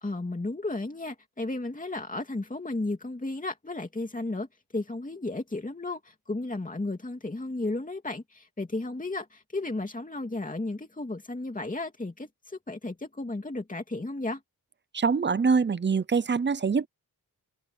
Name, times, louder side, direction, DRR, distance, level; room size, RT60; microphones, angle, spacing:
voice 1, 0.0-4.5 4.7-14.4, left 2 dB, 20° left, 2.8 m, -34 dB
voice 2, 14.9-16.9, right 5 dB, 30° right, 0.7 m, -24 dB
wide cardioid pair, 100°, 40 cm